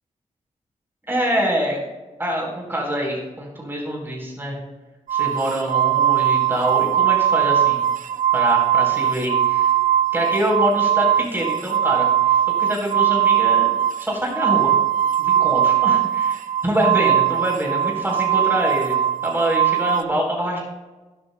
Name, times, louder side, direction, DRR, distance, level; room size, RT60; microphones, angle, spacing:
voice 1, 1.1-1.8 2.2-4.6 5.1-7.8 8.3-9.7 10.1-14.7 15.2-19.0 19.2-20.6, equal, 15° right, -1 dB, 3.6 m, -25 dB
sound 1, 5.1-20.0, right 10 dB, 80° right, 0.7 m, -20 dB
19.5 x 11.0 x 2.2 m, 1.2 s
wide cardioid pair, 135°, 13 cm